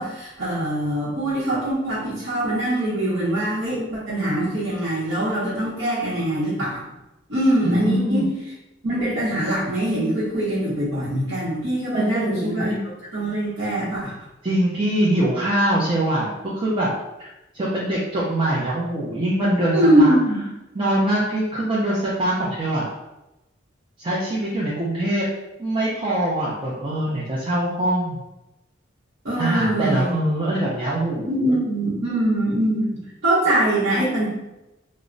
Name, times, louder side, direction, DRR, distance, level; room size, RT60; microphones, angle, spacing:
voice 1, 0.0-6.8 7.3-8.3 8.8-12.7 13.1-14.1 19.7-20.4 29.2-30.1 31.3-32.8 33.2-34.3, right 1 dB, 65° right, -11 dB, 0.8 m, -22 dB
voice 2, 7.6-8.2 11.9-12.8 14.4-16.3 16.6-16.9 17.2-20.1 20.7-22.9 24.0-25.2 25.6-28.2 29.4-31.5, right 1 dB, 30° right, -7 dB, 0.5 m, -23 dB
2.1 x 2.0 x 3.7 m, 0.94 s
head